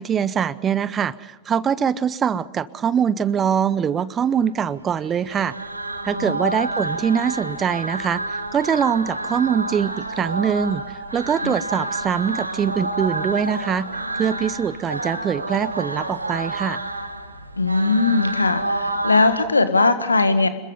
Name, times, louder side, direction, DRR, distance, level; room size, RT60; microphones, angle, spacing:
voice 1, 0.0-5.5 6.0-13.9 14.1-16.8, right 7 dB, 25° right, 19 dB, 0.8 m, -23 dB
sound 1, 5.1-19.4, right 2 dB, 85° right, 1.8 m, -29 dB
voice 2, 17.6-20.5, left 3 dB, 80° left, 11 dB, 1.7 m, -19 dB
27.0 x 22.5 x 5.4 m, 1.2 s
figure-of-eight pair, 90°, 0 cm